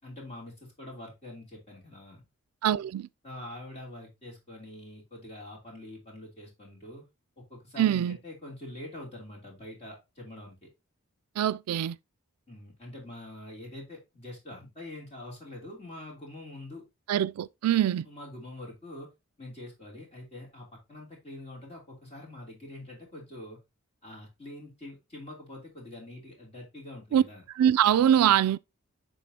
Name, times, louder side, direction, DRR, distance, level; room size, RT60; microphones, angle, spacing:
voice 1, 0.0-2.2 3.2-7.1 7.4-10.7 12.5-16.8 18.0-19.1 19.4-23.6 24.0-27.4, left 1 dB, 30° left, 3.1 m, -45 dB
voice 2, 2.6-3.1 7.8-8.2 11.4-12.0 17.1-18.1 27.1-27.2 27.6-28.6, right 10 dB, 85° right, 0.3 m, -23 dB
11.0 x 3.9 x 2.8 m
head